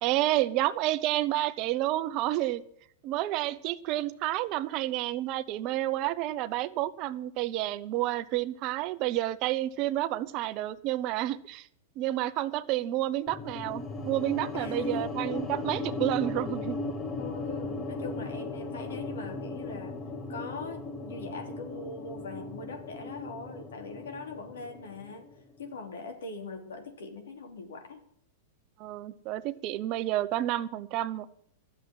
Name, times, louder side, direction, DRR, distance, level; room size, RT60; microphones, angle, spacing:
voice 1, 0.0-2.6 3.0-11.7 12.0-16.8 28.8-31.3, right 15 dB, 45° right, 14 dB, 0.8 m, -30 dB
sound 1, 13.3-25.5, left 2 dB, 20° left, 1.4 m, -37 dB
voice 2, 14.5-15.0 17.1-20.0 20.3-25.2 25.6-28.0, left 3 dB, 85° left, 5 dB, 3.1 m, -41 dB
13.0 x 7.5 x 9.6 m, 0.67 s
hypercardioid pair, 130°, 0 cm